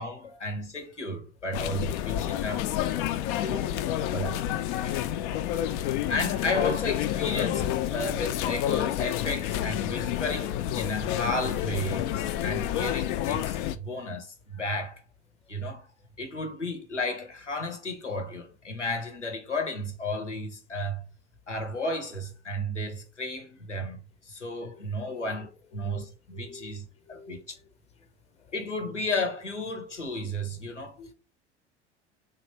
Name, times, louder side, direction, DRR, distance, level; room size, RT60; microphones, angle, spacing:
voice 1, 0.0-2.7 3.4-3.7 4.1-4.4 4.7-4.8 6.1-15.0 15.5-15.9 16.2-21.0 21.5-24.0 24.2-27.5 28.5-31.0, left 1 dB, 90° left, 0.7 m, -33 dB
sound 1, 1.5-13.8, left 11 dB, 45° left, 0.4 m, -29 dB
voice 2, 3.4-4.5 25.1-25.3 25.8-26.0 26.3-26.7 27.1-27.4 31.0-31.1, left 2 dB, 20° left, 0.8 m, -48 dB
3.2 x 2.6 x 4.2 m
figure-of-eight pair, 70°, 35 cm